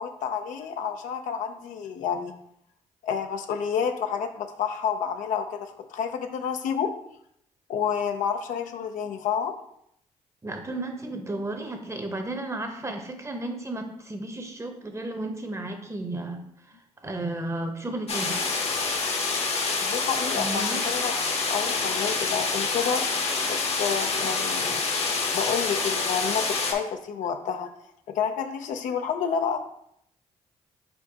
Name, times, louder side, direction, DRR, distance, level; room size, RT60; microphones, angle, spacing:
voice 1, 0.0-2.3 3.0-6.9 7.7-9.5 19.7-21.1 21.5-23.0 23.5-24.8 25.3-27.7 28.1-29.6, left 7 dB, 75° left, 6 dB, 0.5 m, -29 dB
voice 2, 10.4-16.4 17.0-18.4 20.3-20.8, right 2 dB, 20° right, 5 dB, 0.9 m, -33 dB
sound 1, 18.1-26.7, left 4 dB, 50° left, 0.8 m, -27 dB
4.4 x 4.3 x 2.8 m, 0.74 s
supercardioid pair, 55°, 13 cm